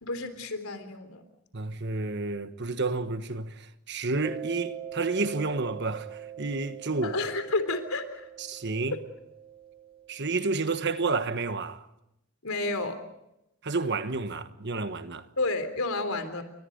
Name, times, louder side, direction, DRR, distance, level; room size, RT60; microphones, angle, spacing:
voice 1, 0.0-1.2 7.0-8.3 12.4-13.0 15.4-16.4, left 2 dB, 75° left, 3.6 m, -30 dB
voice 2, 1.5-7.1 8.4-9.0 10.1-11.9 13.6-15.3, right 3 dB, 50° right, 1.3 m, -30 dB
Mallet percussion, 4.2-10.6, right 9 dB, 25° right, 3.4 m, -43 dB
30.0 x 25.0 x 5.3 m
head